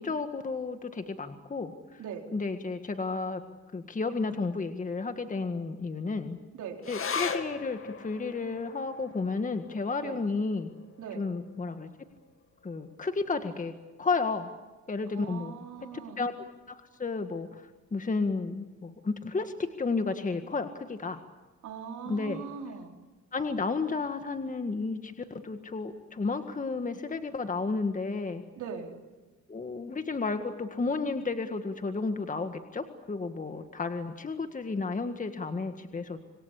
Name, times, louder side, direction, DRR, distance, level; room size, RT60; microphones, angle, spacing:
voice 1, 0.0-2.0 2.3-3.4 3.7-6.4 6.9-10.7 11.1-11.9 12.6-13.7 14.0-14.5 14.9-15.5 15.9-16.3 16.7-21.2 22.1-22.4 23.3-28.4 29.5-36.2, left 4 dB, 25° left, 7 dB, 1.8 m, -32 dB
sound 1, 6.8-13.6 13.9-14.0 14.4-15.0 15.6-15.7, left 5 dB, 45° left, 2.4 m, -40 dB
voice 2, 15.1-16.2 21.6-22.9 28.6-28.9, right 7 dB, 75° right, 2 dB, 4.3 m, -40 dB
27.0 x 22.5 x 8.4 m, 1.2 s
cardioid pair, 90°, 30 cm